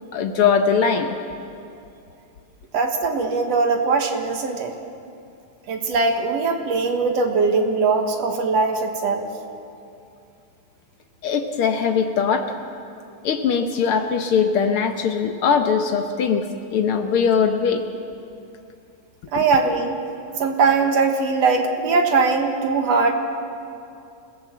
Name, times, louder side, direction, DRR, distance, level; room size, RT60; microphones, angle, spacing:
voice 1, 0.1-1.2 11.2-12.6 13.2-17.9 19.3-19.4, left 6 dB, 70° left, 6 dB, 1.3 m, -21 dB
voice 2, 2.7-4.7 5.7-9.3 19.3-20.0 20.4-23.1, right 4 dB, 55° right, 4 dB, 2.3 m, -20 dB
28.0 x 16.5 x 7.6 m, 2.5 s
omnidirectional pair, 3.8 m